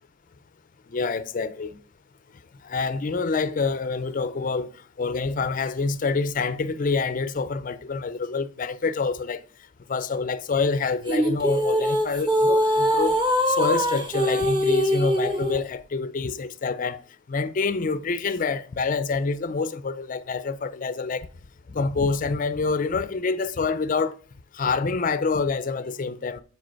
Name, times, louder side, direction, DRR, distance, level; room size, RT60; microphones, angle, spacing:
voice 1, 0.9-1.8 2.6-9.4 9.9-13.2 13.5-17.0 17.3-21.3 21.7-24.2 24.5-26.4, left 4 dB, 40° left, 0.4 m, -27 dB
sound 1, 11.1-15.6, equal, 20° right, 1.1 m, -22 dB
7.9 x 5.0 x 4.5 m
head